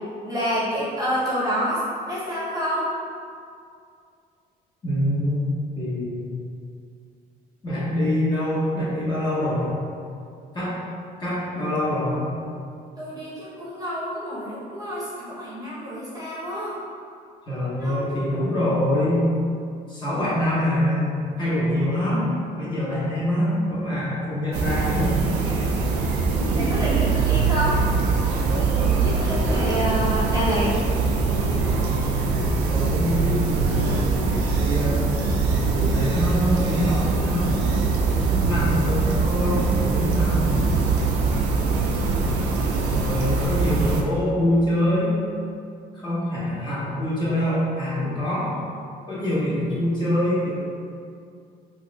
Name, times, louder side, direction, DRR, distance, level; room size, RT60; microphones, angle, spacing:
voice 1, 0.2-1.8 2.1-2.8 13.0-16.8 17.8-18.6 26.5-27.8 28.5-30.7, equal, 20° right, -8 dB, 0.9 m, -28 dB
voice 2, 4.8-5.4 5.8-6.3 7.6-9.8 10.5-10.7 11.2-12.3 17.5-19.2 19.9-21.1 21.4-22.3 22.6-25.2 32.3-35.2 35.7-37.5 38.3-40.6 42.9-45.2 45.9-48.6 49.1-50.6, left 1 dB, 25° left, -9 dB, 1.1 m, -25 dB
sound 1, 24.5-44.0, right 4 dB, 85° right, 0.4 m, -22 dB
3.9 x 2.5 x 2.3 m, 2.4 s
cardioid pair, 110°, 17 cm